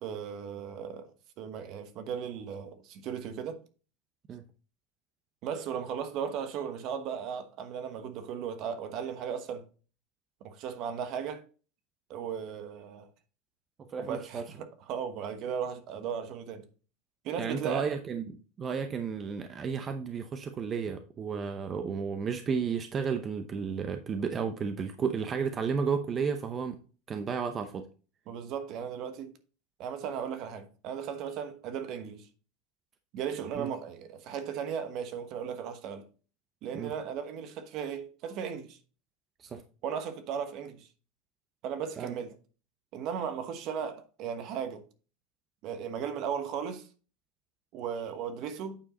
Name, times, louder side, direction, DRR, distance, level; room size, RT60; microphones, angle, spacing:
voice 1, 0.0-1.1 1.4-3.6 5.4-9.6 10.4-11.4 12.1-13.1 14.0-16.6 17.2-17.9 28.3-29.3 29.8-32.3 33.1-36.0 36.6-38.8 39.8-40.9 41.6-42.3 42.9-44.8 45.6-46.9 47.7-48.8, right 7 dB, 50° right, 1.1 m, -36 dB
voice 2, 13.9-14.4 17.4-26.8 27.1-27.8 33.5-33.7 36.7-36.9 39.4-39.6 42.0-42.2, right 6 dB, 30° right, 0.7 m, -33 dB
8.8 x 4.7 x 4.1 m
supercardioid pair, 125°, 0 cm